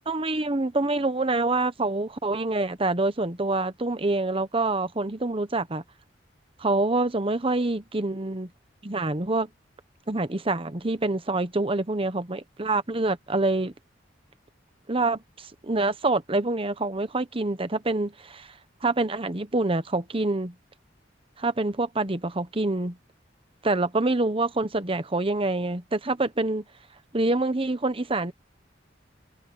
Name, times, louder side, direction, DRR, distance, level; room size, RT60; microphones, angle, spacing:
voice 1, 0.1-5.8 6.6-8.5 8.8-9.5 10.1-13.7 14.9-18.5 18.8-20.5 21.4-23.0 23.6-26.6 27.1-28.3, right 2 dB, 30° right, 1.1 m, -26 dB
head